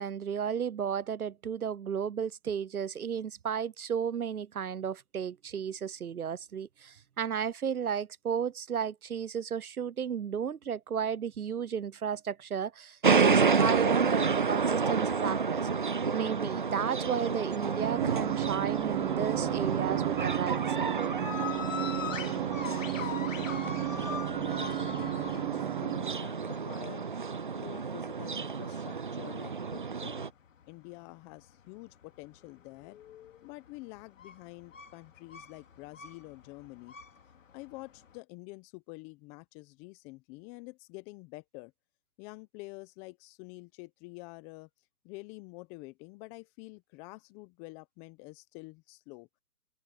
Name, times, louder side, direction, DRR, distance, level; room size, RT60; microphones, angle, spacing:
voice 1, 0.0-21.1, right 7 dB, 60° right, 0.9 m, -34 dB
sound 1, 13.0-30.3, right 5 dB, 30° right, 0.5 m, -30 dB
sound 2, 17.8-26.2, right 33 dB, 15° right, 1.3 m, -34 dB
sound 3, 20.3-38.2, left 8 dB, 50° left, 2.8 m, -44 dB
voice 2, 22.8-23.9 24.2-27.1 27.6-30.3 30.6-33.0 33.4-36.9 37.5-41.7 42.2-44.7 45.0-49.3, left 24 dB, 5° left, 0.7 m, -48 dB
figure-of-eight pair, 140°, 49 cm